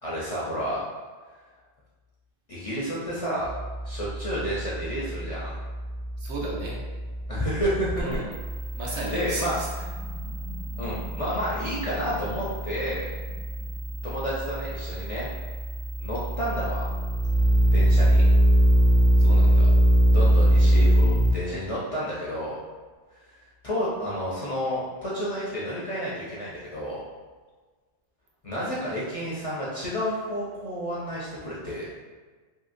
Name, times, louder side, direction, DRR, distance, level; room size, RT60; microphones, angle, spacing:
voice 1, 0.0-0.8 2.5-3.5 3.8-5.6 7.3-8.2 9.1-9.5 10.8-13.1 14.0-15.3 16.0-16.9 17.7-18.2 20.1-22.6 23.1-23.2 23.6-27.0 28.4-31.8, equal, 50° left, -8 dB, 0.4 m, -30 dB
sound 1, 3.4-21.3, equal, 60° right, 0.8 m, -23 dB
voice 2, 6.2-6.8 8.0-8.2 8.7-9.7 19.2-19.7, right 2 dB, 85° right, -3 dB, 1.0 m, -34 dB
2.8 x 2.8 x 2.5 m, 1.4 s
omnidirectional pair, 1.1 m